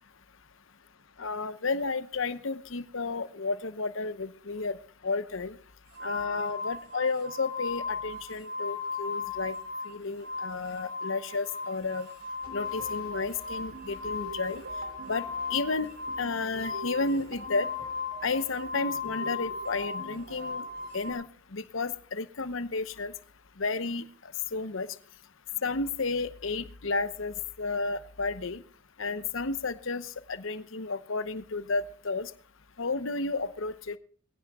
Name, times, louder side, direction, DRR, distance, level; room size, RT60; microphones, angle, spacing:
voice 1, 1.2-4.8 5.0-5.5 6.0-9.6 9.9-12.1 12.5-14.6 15.1-17.7 18.2-20.7 20.9-21.2 21.5-23.1 23.6-24.1 24.5-24.9 25.6-28.6 29.0-32.3 32.8-33.9, left 3 dB, 65° left, 13 dB, 0.9 m, -32 dB
sound 1, 5.9-9.9 10.2-21.1, left 4 dB, 50° right, 5.8 m, -37 dB
sound 2, 12.4-21.2, right 3 dB, 85° right, 3.1 m, -47 dB
22.0 x 16.0 x 2.3 m, 0.44 s
head